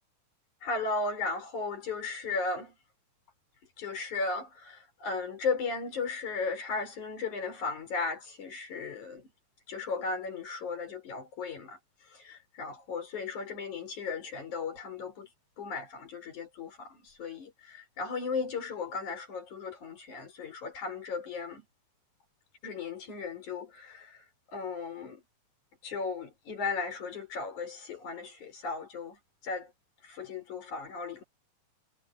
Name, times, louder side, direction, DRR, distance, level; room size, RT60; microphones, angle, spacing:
voice 1, 0.6-2.7 3.8-9.3 9.7-11.8 12.1-15.3 15.6-21.6 22.6-24.2 24.5-25.2 25.8-29.2 29.4-29.7 30.0-31.2, left 4 dB, 60° left, 6.8 m, -36 dB
omnidirectional pair, 3.9 m